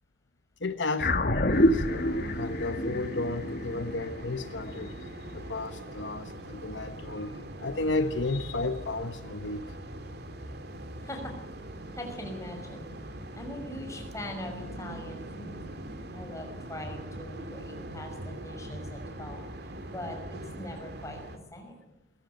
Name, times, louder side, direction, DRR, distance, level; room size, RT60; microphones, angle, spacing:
voice 1, 0.6-9.7, left 2 dB, 75° left, 1.1 m, -33 dB
sound 1, 1.0-5.6, left 1 dB, 55° left, 1.6 m, -28 dB
sound 2, 1.5-21.4, right 1 dB, 60° right, 2.4 m, -42 dB
voice 2, 11.0-11.3 11.9-12.9 13.3-15.6 16.1-19.4 19.9-21.8, left 1 dB, 15° left, 5.9 m, -41 dB
21.0 x 17.0 x 9.3 m
head